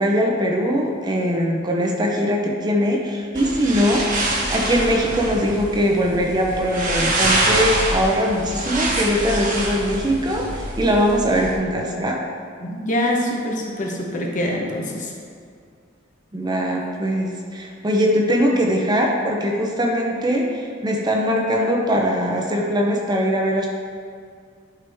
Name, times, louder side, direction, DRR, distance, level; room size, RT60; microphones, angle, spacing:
voice 1, 0.0-12.2 16.3-23.7, equal, 20° right, 0 dB, 0.7 m, -21 dB
sound 1, 3.3-11.5, right 1 dB, 45° right, 1.2 m, -25 dB
voice 2, 12.6-15.1, left 1 dB, 40° left, 0 dB, 1.0 m, -24 dB
11.0 x 4.7 x 3.5 m, 2.2 s
head